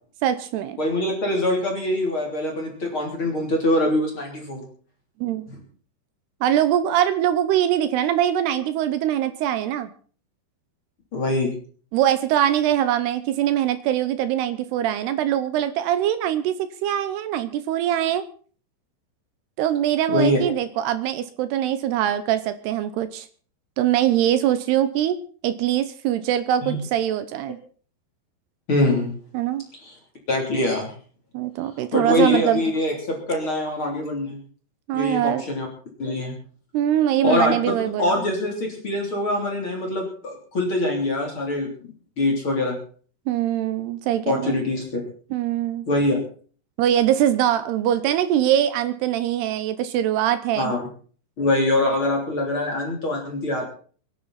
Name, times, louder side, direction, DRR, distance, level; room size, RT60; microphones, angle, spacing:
voice 1, 0.2-0.8 5.2-5.5 6.4-9.9 11.9-18.2 19.6-23.3 23.8-25.2 25.4-27.6 29.3-29.6 31.3-32.6 34.9-35.4 36.7-38.3 43.3-44.6 45.3-45.9 46.8-50.7, right 11 dB, 80° right, 12 dB, 2.4 m, -22 dB
voice 2, 0.8-4.6 5.5-5.6 11.1-11.5 20.1-20.4 26.6-26.8 28.7-29.1 29.8-29.9 30.3-30.9 31.9-34.4 34.9-35.7 36.0-36.3 37.2-42.8 44.3-45.0 45.9-46.2 50.6-50.8 51.4-53.6, left 1 dB, 30° left, 1 dB, 3.5 m, -24 dB
24.0 x 11.0 x 4.2 m, 0.42 s
omnidirectional pair, 5.6 m